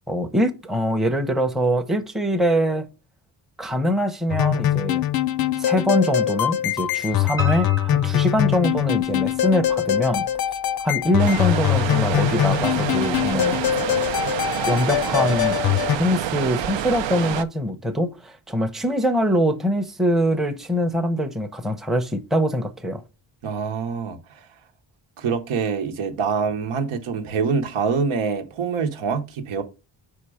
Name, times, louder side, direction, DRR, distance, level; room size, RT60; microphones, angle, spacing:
voice 1, 0.1-2.9 3.6-5.0 5.6-10.2 10.8-13.6 14.7-15.6 15.9-23.0, equal, ahead, 0.6 m, -23 dB
sound 1, 4.3-16.0, left 12 dB, 50° left, 0.5 m, -23 dB
Piano, 7.4-9.3 9.7-10.6 10.9-11.0 11.5-11.6 11.8-11.9, right 4 dB, 25° right, 0.9 m, -35 dB
sound 2, 11.2-17.4, right 10 dB, 65° right, 0.6 m, -27 dB
voice 2, 23.4-24.5 25.2-29.6, right 5 dB, 85° right, 1.1 m, -25 dB
5.0 x 4.4 x 4.9 m
cardioid pair, 105°, 48 cm